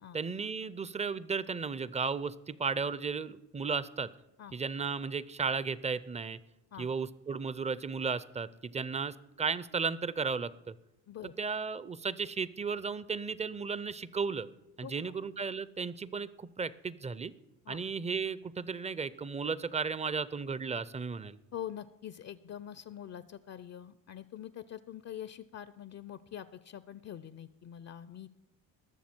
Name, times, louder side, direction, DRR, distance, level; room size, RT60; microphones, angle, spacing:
voice 1, 0.1-4.1 4.5-6.4 6.8-10.8 11.2-14.5 14.8-17.3 17.7-21.4, right 5 dB, 15° right, 18 dB, 0.5 m, -34 dB
voice 2, 14.8-15.1 17.7-17.8 21.5-28.3, left 10 dB, 40° left, 16 dB, 0.5 m, -44 dB
20.5 x 7.0 x 4.5 m, 0.94 s
supercardioid pair, 70°, 44 cm